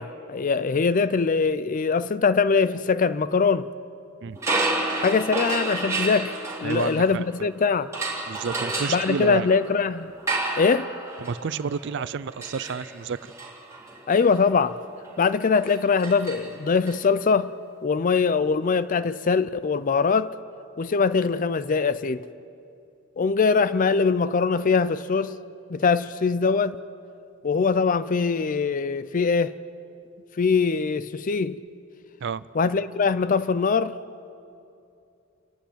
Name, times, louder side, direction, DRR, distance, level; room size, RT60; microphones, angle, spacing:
voice 1, 0.0-3.7 5.0-6.3 6.6-7.9 8.9-10.1 10.5-10.9 14.1-14.8 15.2-17.5 17.8-20.3 20.8-22.2 23.2-25.4 25.7-26.8 27.4-29.5 30.4-31.6 32.6-34.0, left 5 dB, 40° left, 0.4 m, -22 dB
sound 1, 4.4-7.5 7.9-16.9, right 2 dB, 15° right, 3.4 m, -31 dB
voice 2, 6.6-7.2 8.3-9.5 11.2-13.3 32.2-32.5, right 6 dB, 60° right, 0.4 m, -30 dB
28.5 x 11.5 x 9.3 m
head